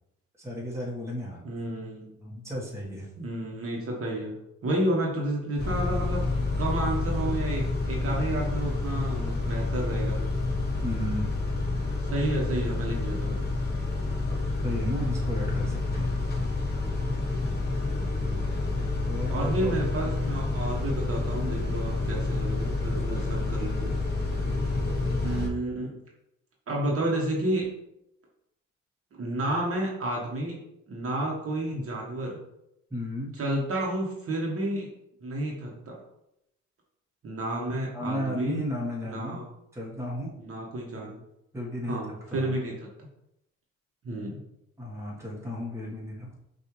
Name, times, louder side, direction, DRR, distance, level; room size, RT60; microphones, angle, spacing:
voice 1, 0.4-1.5 2.2-3.1 10.8-11.3 14.6-16.1 19.0-19.8 32.9-33.3 37.9-39.4 39.7-40.3 41.5-42.5 44.8-46.4, left 1 dB, 10° right, -4 dB, 1.3 m, -34 dB
voice 2, 1.4-2.1 3.2-4.4 4.6-6.3 6.6-10.2 12.1-13.5 17.6-18.5 19.3-24.0 24.3-24.8 25.2-26.0 26.7-27.7 29.1-30.6 30.9-32.4 33.4-34.9 35.2-36.0 37.2-38.6 39.0-39.4 40.4-41.2 41.9-42.9 44.0-44.4, right 1 dB, 50° right, -2 dB, 1.2 m, -31 dB
Car / Idling / Accelerating revving vroom, 5.6-25.5, left 3 dB, 35° left, 1.1 m, -29 dB
5.8 x 2.7 x 3.1 m, 0.82 s
cardioid pair, 90°, 30 cm